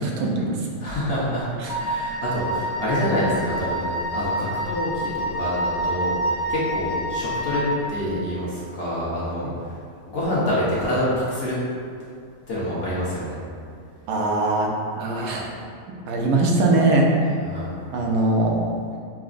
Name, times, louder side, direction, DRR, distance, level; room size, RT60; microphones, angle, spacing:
voice 1, 0.0-0.7 1.6-1.7 14.1-14.7 15.0-15.5 15.9-17.3 17.9-18.6, right 2 dB, 90° right, -1 dB, 1.0 m, -21 dB
voice 2, 0.8-1.5 1.8-7.6 7.9-9.7 10.1-11.5 12.5-13.4 17.5-17.7, equal, 50° left, -8 dB, 1.0 m, -26 dB
Wind instrument woodwind instrument, 1.7-7.8, right 1 dB, 75° left, 1.1 m, -27 dB
5.7 x 2.0 x 2.4 m, 2.3 s
omnidirectional pair, 1.4 m